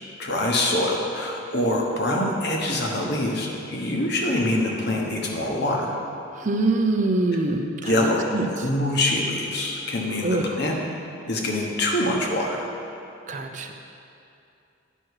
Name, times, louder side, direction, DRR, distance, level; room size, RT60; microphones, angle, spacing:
voice 1, 0.2-5.9 7.8-10.8 11.3-12.7, left 1 dB, 55° left, 0 dB, 1.2 m, -24 dB
voice 2, 6.4-8.5 10.2-10.5 13.3-13.7, right 2 dB, 40° right, 5 dB, 0.5 m, -24 dB
9.8 x 6.2 x 4.7 m, 2.6 s
head